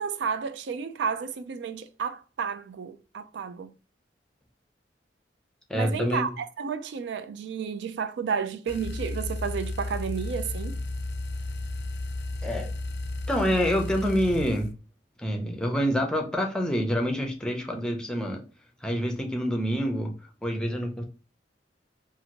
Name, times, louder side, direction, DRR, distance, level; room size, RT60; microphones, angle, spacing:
voice 1, 0.0-3.7 5.7-10.8, right 6 dB, 70° right, 0.3 m, -32 dB
voice 2, 5.7-6.3 12.4-12.7 13.3-14.7 15.2-18.4 18.8-20.1 20.4-21.0, equal, 5° left, 0.5 m, -27 dB
sound 1, 8.7-14.7, left 2 dB, 65° left, 0.4 m, -33 dB
2.8 x 2.5 x 2.8 m
head